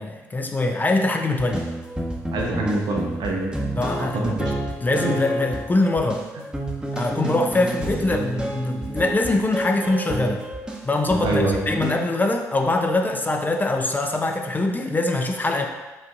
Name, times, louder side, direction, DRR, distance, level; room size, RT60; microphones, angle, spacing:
voice 1, 0.0-1.7 3.7-4.5 4.8-6.2 6.9-10.4 10.8-15.7, left 2 dB, 20° left, 3 dB, 0.5 m, -23 dB
sound 1, 1.4-12.0, right 1 dB, 10° right, 1.0 m, -29 dB
voice 2, 2.3-3.6 4.0-4.5 11.2-11.6, right 2 dB, 60° right, -1 dB, 0.8 m, -25 dB
7.5 x 2.6 x 2.4 m, 1.2 s
hypercardioid pair, 45°, 8 cm